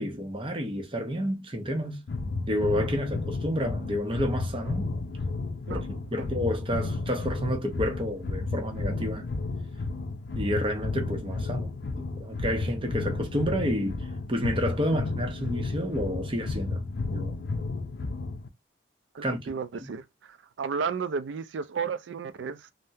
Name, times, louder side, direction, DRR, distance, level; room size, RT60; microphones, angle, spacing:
voice 1, 0.0-2.0 2.5-4.9 5.7-9.3 10.3-16.8 17.1-17.4 19.2-19.5 19.8-19.9, equal, 30° right, 0.7 m, -30 dB
sound 1, 2.1-18.5, left 3 dB, 65° left, 0.5 m, -32 dB
voice 2, 19.1-22.7, right 5 dB, 80° right, 0.4 m, -33 dB
3.4 x 2.1 x 2.7 m
head